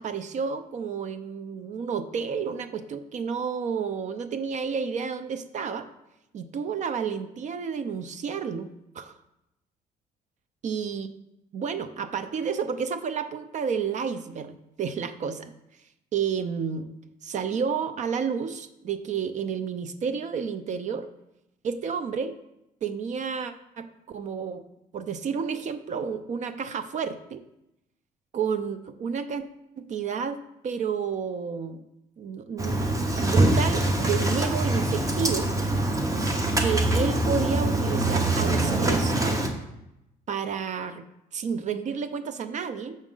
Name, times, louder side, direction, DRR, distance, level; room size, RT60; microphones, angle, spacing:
voice 1, 0.0-5.9 6.3-8.7 8.9-9.1 10.6-11.1 11.5-15.5 16.1-16.9 17.2-21.1 21.6-22.4 22.8-24.6 24.9-27.4 28.3-29.5 29.8-31.9 32.2-35.5 36.6-39.5 40.3-41.0 41.3-43.0, right 6 dB, 50° right, 11 dB, 0.5 m, -31 dB
Engine starting, 32.6-39.5, right 1 dB, 20° right, 0.9 m, -24 dB
6.4 x 5.9 x 3.7 m, 0.87 s
cardioid pair, 110°, 16 cm